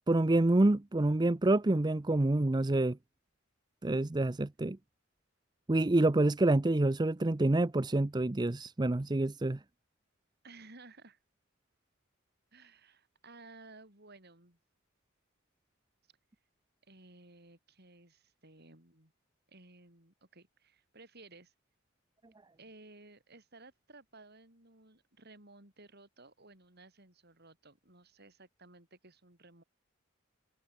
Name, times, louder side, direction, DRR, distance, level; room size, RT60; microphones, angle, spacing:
voice 1, 0.1-3.0 3.8-4.8 5.7-9.6, right 2 dB, 20° right, 0.6 m, -27 dB
voice 2, 10.4-11.2 12.5-14.6 16.9-19.1 19.5-21.5 22.6-29.6, right 2 dB, 50° right, 6.9 m, -56 dB
head